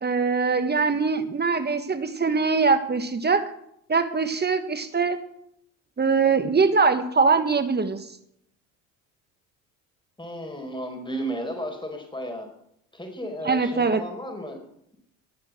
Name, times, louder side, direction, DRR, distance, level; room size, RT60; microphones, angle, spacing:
voice 1, 0.0-3.5 3.9-5.2 6.0-8.1 13.4-14.0, right 4 dB, 25° right, 10 dB, 1.5 m, -22 dB
voice 2, 10.2-12.5 12.9-14.6, equal, 10° left, 3 dB, 5.3 m, -33 dB
19.5 x 7.5 x 7.7 m, 0.75 s
supercardioid pair, 75°, 38 cm